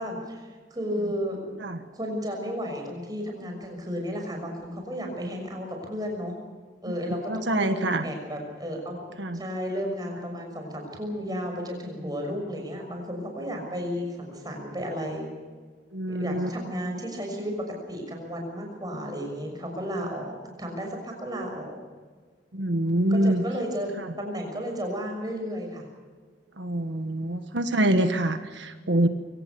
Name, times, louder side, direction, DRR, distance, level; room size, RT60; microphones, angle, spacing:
voice 1, 0.0-6.3 6.8-9.0 9.3-15.3 16.1-17.5 17.9-21.7 23.1-25.8, equal, 20° right, 2 dB, 6.2 m, -33 dB
voice 2, 7.3-8.0 9.2-9.4 15.9-16.5 22.5-23.4 26.6-29.1, right 1 dB, 90° right, 7 dB, 1.4 m, -25 dB
25.0 x 18.0 x 7.0 m, 1.5 s
head